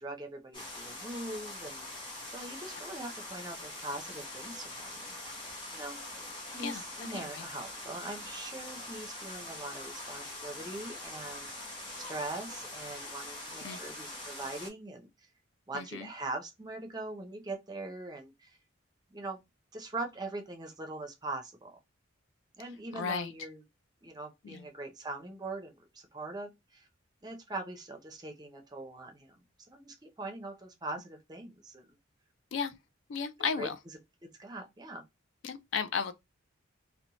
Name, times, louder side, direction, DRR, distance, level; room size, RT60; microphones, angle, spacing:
voice 1, 0.0-5.5 5.7-11.5 11.9-15.1 15.7-18.6 19.1-19.4 19.7-21.8 22.6-23.6 24.0-26.9 27.2-29.4 29.7-31.8 33.4-33.7 34.2-35.0, right 2 dB, 20° right, 0.5 m, -42 dB
sound 1, 0.5-14.7, left 2 dB, 25° left, 0.9 m, -43 dB
voice 2, 6.6-7.5 13.6-13.8 15.7-16.1 22.9-23.3 24.4-24.6 32.5-32.7 33.1-33.8 35.4-36.1, left 6 dB, 65° left, 0.3 m, -35 dB
2.7 x 2.1 x 2.8 m
head